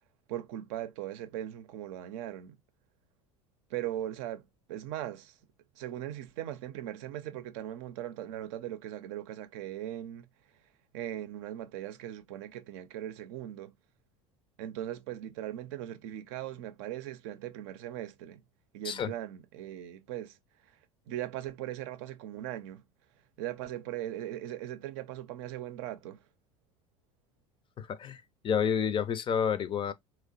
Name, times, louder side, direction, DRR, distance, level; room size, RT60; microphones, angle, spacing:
voice 1, 0.3-2.6 3.7-4.4 4.7-5.3 5.8-10.3 10.9-13.7 14.6-18.4 18.7-20.4 21.1-22.8 23.4-26.2, right 12 dB, 65° right, 0.5 m, -39 dB
voice 2, 27.8-29.9, left 7 dB, 30° left, 0.4 m, -30 dB
2.9 x 2.1 x 2.4 m
hypercardioid pair, 80°, 16 cm